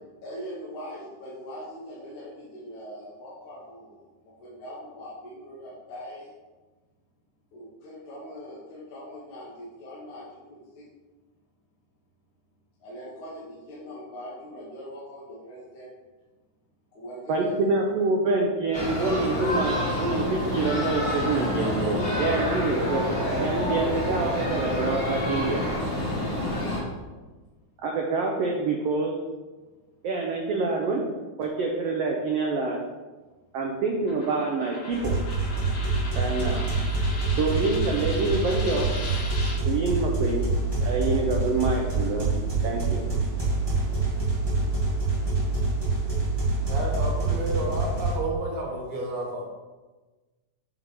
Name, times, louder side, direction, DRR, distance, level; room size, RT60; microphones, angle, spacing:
voice 1, 0.2-6.3 7.5-10.8 12.8-15.9 16.9-17.5, equal, 70° left, -8 dB, 2.6 m, -41 dB
voice 2, 17.3-23.1 23.4-25.6 27.8-29.1 30.0-31.0 31.4-32.8 33.5-35.2 36.1-36.6 37.4-38.9 39.6-40.4 40.8-42.3 42.6-43.0, right 3 dB, 85° right, 0 dB, 1.4 m, -26 dB
sound 1, 18.7-26.8, left 1 dB, 25° left, 1.3 m, -28 dB
Coin (dropping), 34.1-39.6, left 2 dB, 85° left, 3.5 m, -38 dB
sound 2, 34.9-48.1, right 3 dB, 20° right, 0.6 m, -26 dB
voice 3, 46.7-49.4, right 1 dB, 65° right, -1 dB, 2.3 m, -31 dB
7.8 x 3.7 x 4.6 m, 1.2 s
omnidirectional pair, 3.6 m